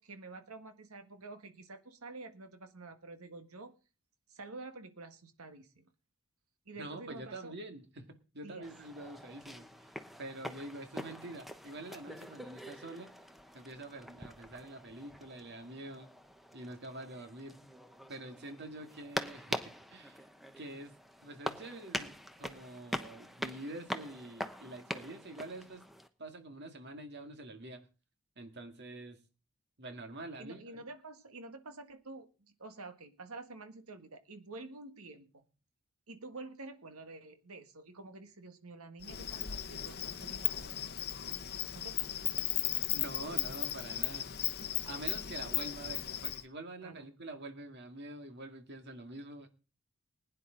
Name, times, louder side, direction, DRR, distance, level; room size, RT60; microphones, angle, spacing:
voice 1, 0.0-3.7 4.3-5.8 6.6-7.5 8.4-8.7 30.4-32.3 32.6-35.5 36.1-40.9 41.7-42.3 44.8-45.2 46.8-47.1, right 3 dB, 85° right, 8 dB, 1.7 m, -49 dB
voice 2, 6.8-9.9 10.2-13.1 13.5-16.1 16.5-17.6 18.1-19.6 19.9-20.2 20.6-20.9 21.2-25.9 26.2-27.9 28.4-29.2 29.8-30.8 42.9-44.3 44.9-49.5, right 2 dB, 50° right, 6 dB, 2.1 m, -46 dB
sound 1, 8.6-26.1, equal, ahead, 0.9 m, -44 dB
Insect, 39.0-46.4, left 12 dB, 50° left, 0.8 m, -36 dB
20.5 x 9.9 x 3.9 m, 0.34 s
head